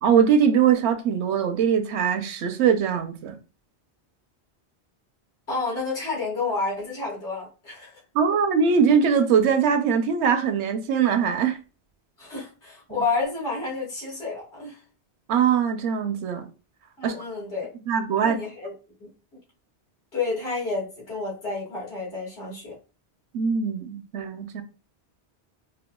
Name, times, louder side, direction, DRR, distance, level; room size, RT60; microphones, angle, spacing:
voice 1, 0.0-3.4 8.1-11.6 15.3-16.5 17.0-17.2 17.9-18.4 23.3-24.6, right 7 dB, 80° right, 0.8 m, -21 dB
voice 2, 5.5-8.0 12.2-14.8 17.0-17.7 18.2-18.7 19.0-19.1 20.1-22.8, left 3 dB, 75° left, 1.9 m, -30 dB
4.5 x 2.2 x 2.2 m
omnidirectional pair, 1.1 m